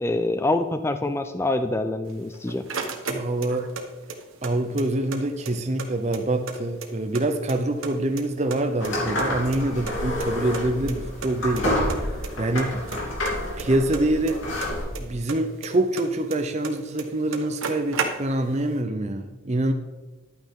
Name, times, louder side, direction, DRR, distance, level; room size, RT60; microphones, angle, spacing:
voice 1, 0.0-2.6, left 2 dB, 10° left, 9 dB, 0.3 m, -25 dB
sound 1, 2.1-3.8 4.1-5.2 5.5-5.6 5.8-7.2 7.5-8.2 8.5-9.9 10.2-10.3 10.5-10.6 10.9-11.0 11.2-11.6 11.9-12.3 12.6-15.0 15.3-16.7 17.0-17.1 17.3-18.5, right 5 dB, 75° right, 1.3 m, -33 dB
voice 2, 3.1-3.7 4.4-11.7 12.4-12.7 13.6-14.4 15.0-19.7, right 1 dB, 30° right, 5 dB, 0.6 m, -25 dB
sound 2, 8.8-14.8, left 1 dB, 65° left, 3.2 m, -29 dB
11.5 x 9.0 x 3.7 m, 1.2 s
head